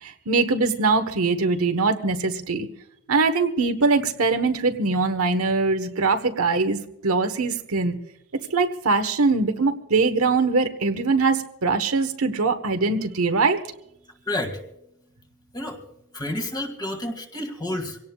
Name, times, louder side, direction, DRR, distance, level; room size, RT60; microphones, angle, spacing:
voice 1, 0.0-2.7 3.1-8.0 8.5-13.6, right 3 dB, 80° right, 7 dB, 1.3 m, -22 dB
voice 2, 14.3-14.6 15.5-15.8 16.1-18.0, left 1 dB, 20° left, 4 dB, 2.1 m, -30 dB
25.5 x 17.5 x 2.4 m, 0.79 s
head